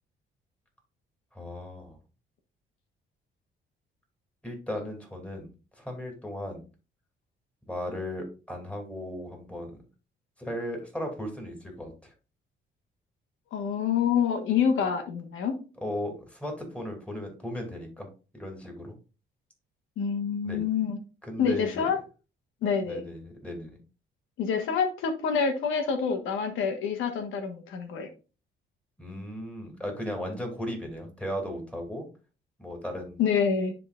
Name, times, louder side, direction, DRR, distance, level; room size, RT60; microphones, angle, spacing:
voice 1, 1.3-2.0 4.4-6.6 7.6-9.8 10.4-12.1 15.8-18.1 18.3-19.0 20.4-20.6 21.2-21.9 22.8-23.8 29.0-32.1 32.6-33.2, left 1 dB, 5° left, 1 dB, 2.7 m, -36 dB
voice 2, 13.5-15.5 20.0-21.0 21.4-22.0 22.6-23.0 24.4-28.1 33.2-33.7, left 6 dB, 85° left, 6 dB, 1.4 m, -27 dB
10.5 x 3.8 x 2.4 m, 0.33 s
cardioid pair, 90°, 20 cm